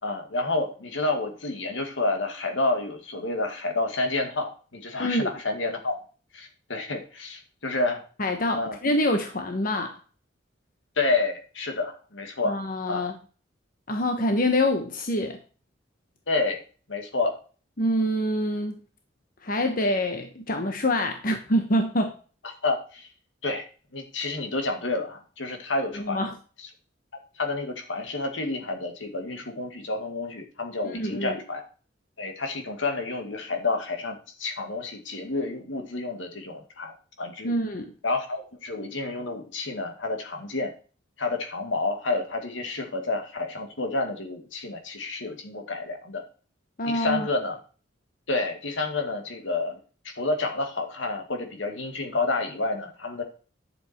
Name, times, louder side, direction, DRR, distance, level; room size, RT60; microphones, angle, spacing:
voice 1, 0.0-6.0 6.3-8.0 8.6-8.8 11.0-12.6 12.9-13.0 16.3-16.6 16.9-17.4 22.6-23.1 23.4-23.7 23.9-26.3 27.3-31.6 32.2-37.5 38.0-40.7 41.2-46.2 46.9-47.6 48.3-49.8 50.0-53.2, left 3 dB, 80° left, 4 dB, 2.3 m, -29 dB
voice 2, 5.0-5.3 8.2-10.0 12.4-13.1 13.9-15.4 17.8-18.7 19.4-22.1 26.0-26.3 30.9-31.4 37.4-37.9 46.8-47.3, left 1 dB, 45° left, 5 dB, 1.2 m, -26 dB
11.5 x 7.3 x 4.5 m, 0.38 s
head